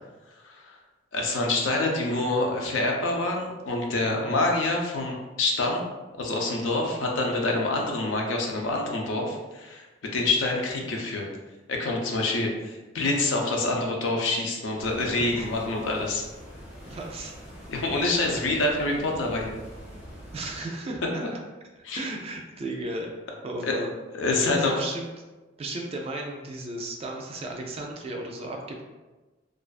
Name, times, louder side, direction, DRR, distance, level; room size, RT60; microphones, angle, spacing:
voice 1, 1.1-5.8 6.2-9.8 10.1-11.3 11.7-16.2 17.7-19.5 21.8-22.0 23.7-23.8 24.1-24.7, left 2 dB, 90° left, 0 dB, 0.5 m, -26 dB
sound 1, 14.8-20.6, equal, 65° left, 1.1 m, -44 dB
voice 2, 16.9-17.3 20.3-21.2 21.9-23.1 23.4-23.9 24.5-25.1 25.6-28.8, right 2 dB, 30° right, 1 dB, 0.3 m, -34 dB
2.4 x 2.2 x 2.4 m, 1.2 s
head